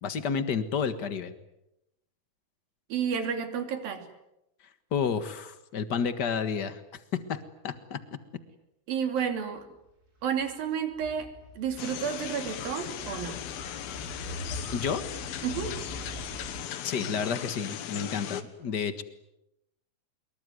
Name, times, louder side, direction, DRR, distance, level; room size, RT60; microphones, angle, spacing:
voice 1, 0.0-1.3 4.9-8.0 14.7-15.1 16.8-19.0, left 6 dB, 50° left, 11 dB, 1.3 m, -31 dB
voice 2, 2.9-4.1 8.9-9.6 10.2-13.4 15.4-15.8, right 7 dB, 75° right, 7 dB, 4.7 m, -31 dB
sound 1, 10.2-16.6, right 1 dB, 25° right, 5.3 m, -43 dB
sound 2, 11.8-18.4, left 10 dB, 80° left, 3.3 m, -38 dB
25.5 x 23.0 x 9.5 m, 0.87 s
omnidirectional pair, 4.2 m